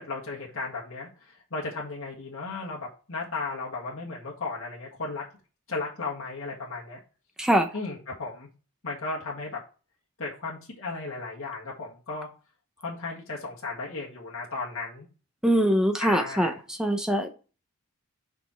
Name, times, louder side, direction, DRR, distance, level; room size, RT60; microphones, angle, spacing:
voice 1, 0.0-5.2 5.7-7.0 7.7-8.5 8.8-9.6 10.2-12.3 12.8-15.1 16.0-16.6, left 3 dB, 65° left, -3 dB, 1.8 m, -35 dB
voice 2, 15.4-16.5 16.8-17.3, equal, 5° right, 6 dB, 0.8 m, -23 dB
5.5 x 5.3 x 4.4 m, 0.34 s
head